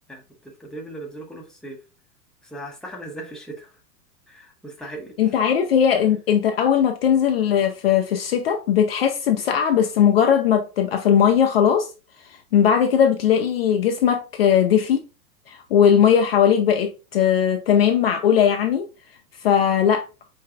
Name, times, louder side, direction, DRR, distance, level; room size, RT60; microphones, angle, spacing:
voice 1, 0.1-1.8 2.4-3.7 4.3-5.4, right 1 dB, ahead, 0.7 m, -38 dB
voice 2, 5.2-11.9 12.5-15.0 15.5-18.9 19.4-20.0, left 8 dB, 40° left, 0.5 m, -19 dB
4.6 x 4.6 x 2.4 m
figure-of-eight pair, 100°, 48 cm